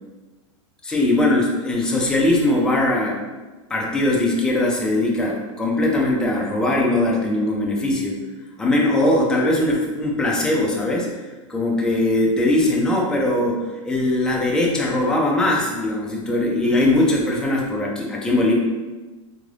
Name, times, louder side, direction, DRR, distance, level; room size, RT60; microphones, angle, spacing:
voice 1, 0.8-3.2 3.7-8.2 8.6-11.1 11.5-13.6 13.8-18.5, left 1 dB, 5° left, -2 dB, 0.3 m, -20 dB
3.7 x 2.4 x 3.2 m, 1.2 s
supercardioid pair, 165°, 17 cm